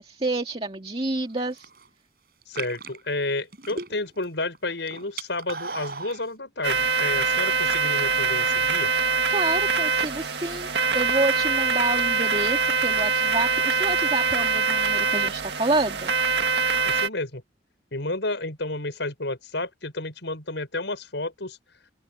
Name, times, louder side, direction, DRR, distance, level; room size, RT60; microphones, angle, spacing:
voice 1, 0.0-1.7 9.3-16.1, right 2 dB, 30° right, 2.3 m, -28 dB
sound 1, 1.4-1.8 2.4-4.2 4.5-6.2, right 4 dB, 55° right, 6.1 m, -36 dB
voice 2, 2.5-8.9 16.8-17.4 17.9-21.6, left 2 dB, 80° left, 5.7 m, -31 dB
sound 2, 6.6-17.1, right 4 dB, 70° right, 1.9 m, -24 dB
open air
head